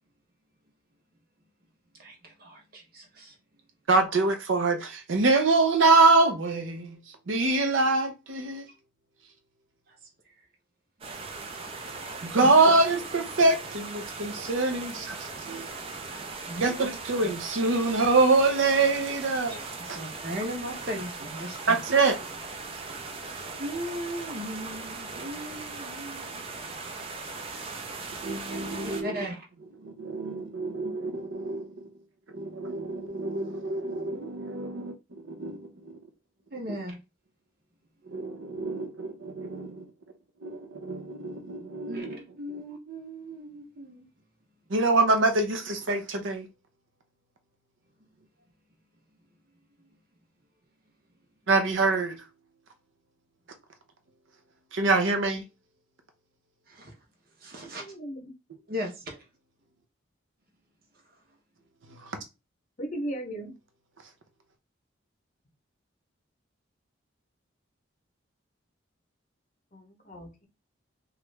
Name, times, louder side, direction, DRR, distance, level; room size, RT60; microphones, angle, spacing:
voice 1, 2.0-3.3 11.0-11.4 12.4-12.6 16.4-16.8 17.2-17.3 19.8-21.8 23.6-26.5 28.8-29.5 36.5-37.0 41.9-44.1 56.7-56.9 57.4-57.8 58.7-59.2, equal, 50° right, 0.9 m, -37 dB
voice 2, 3.9-7.0 7.3-8.6 12.3-15.7 16.6-19.6 21.7-22.2 28.2-29.1 29.8-31.7 32.3-34.9 35.3-35.6 38.1-39.9 40.4-42.2 42.5-42.6 44.7-46.5 51.5-52.2 54.7-55.4, right 3 dB, 75° right, 0.6 m, -25 dB
sound 1, 11.0-29.0, right 3 dB, 30° right, 0.4 m, -39 dB
voice 3, 57.8-58.3 62.8-63.5 69.7-70.4, right 1 dB, 40° left, 0.8 m, -37 dB
3.0 x 2.4 x 3.2 m
head